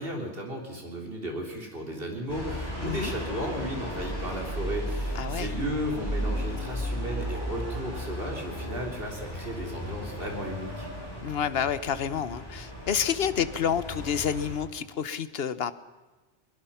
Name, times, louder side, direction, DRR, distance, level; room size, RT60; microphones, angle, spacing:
voice 1, 0.0-10.9, equal, 50° right, 1 dB, 4.1 m, -35 dB
sound 1, 2.3-14.6, equal, 20° left, 6.5 m, -35 dB
voice 2, 2.8-3.1 5.1-5.5 11.2-15.8, left 8 dB, 60° left, 14 dB, 1.2 m, -29 dB
22.0 x 21.0 x 5.8 m, 1.2 s
omnidirectional pair, 1.2 m